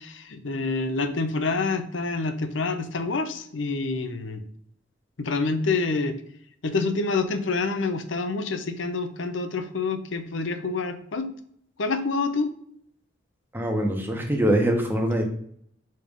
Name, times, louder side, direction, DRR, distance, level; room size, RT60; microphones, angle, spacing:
voice 1, 0.0-4.4 5.2-6.2 6.6-11.3 11.8-12.5, left 3 dB, 80° left, 8 dB, 0.7 m, -27 dB
voice 2, 13.5-15.2, right 1 dB, 10° right, 2 dB, 1.0 m, -23 dB
5.3 x 3.7 x 5.2 m, 0.64 s
head